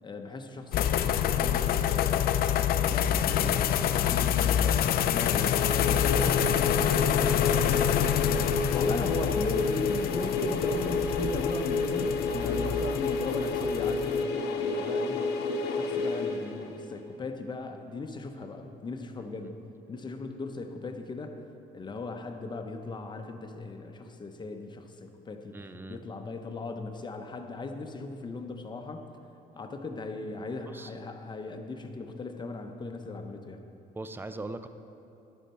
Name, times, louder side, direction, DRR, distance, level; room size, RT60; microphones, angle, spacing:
voice 1, 0.0-2.4 2.7-7.3 7.5-8.1 8.7-15.3 15.6-19.6 19.9-21.4 21.7-25.6 25.9-29.0 29.6-33.6, left 3 dB, 25° left, 5 dB, 0.8 m, -38 dB
sound 1, 0.7-14.2, left 10 dB, 60° left, 0.4 m, -27 dB
sound 2, 5.2-17.0, left 3 dB, 80° left, 1.0 m, -30 dB
voice 2, 25.5-26.0 30.7-30.9 33.9-34.7, right 2 dB, 10° right, 10 dB, 0.5 m, -40 dB
11.5 x 9.0 x 4.4 m, 2.8 s
cardioid pair, 110°, 17 cm